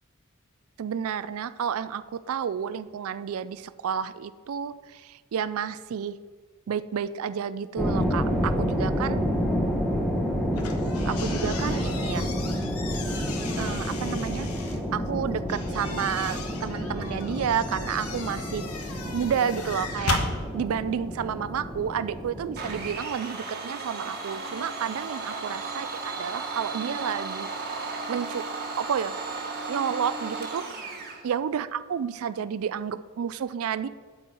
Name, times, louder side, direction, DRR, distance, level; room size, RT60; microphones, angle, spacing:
voice 1, 0.8-6.2 6.7-9.2 11.1-12.3 13.6-18.7 19.1-20.2 20.5-27.5 28.1-28.4 28.8-31.0 31.2-33.9, right 8 dB, 70° right, 15 dB, 0.4 m, -31 dB
sound 1, 7.8-23.0, equal, ahead, 0.9 m, -29 dB
sound 2, 10.5-14.8 15.5-20.3, left 4 dB, 85° left, 1.2 m, -36 dB
Domestic sounds home sounds, 22.6-31.2, right 3 dB, 45° right, 1.3 m, -35 dB
8.8 x 4.7 x 7.5 m, 1.5 s
head